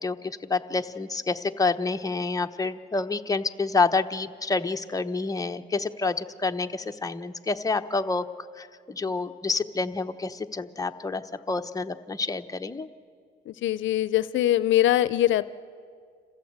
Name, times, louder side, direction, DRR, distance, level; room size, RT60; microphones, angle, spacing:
voice 1, 0.0-8.3 8.6-12.9, left 3 dB, 15° left, 7 dB, 0.9 m, -28 dB
voice 2, 13.5-15.5, left 13 dB, 75° left, 16 dB, 0.5 m, -22 dB
27.0 x 15.5 x 8.0 m, 2.1 s
cardioid pair, 90°, 20 cm